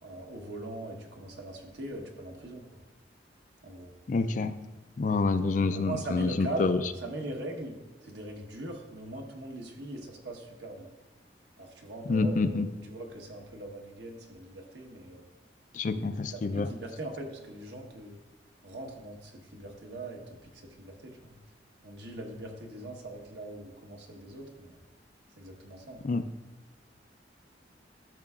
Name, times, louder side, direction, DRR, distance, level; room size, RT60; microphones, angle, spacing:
voice 1, 0.0-2.6 3.6-3.9 5.7-6.7 7.0-7.8 8.0-10.9 11.6-15.2 15.9-18.2 18.6-20.2 20.5-21.3 21.8-24.8 25.4-26.1, right 2 dB, 70° right, 1 dB, 1.2 m, -41 dB
voice 2, 4.1-4.5 5.0-6.8 12.1-12.7 15.7-16.7 26.0-26.2, left 3 dB, 45° left, 10 dB, 0.4 m, -27 dB
12.5 x 6.6 x 2.4 m, 1.2 s
head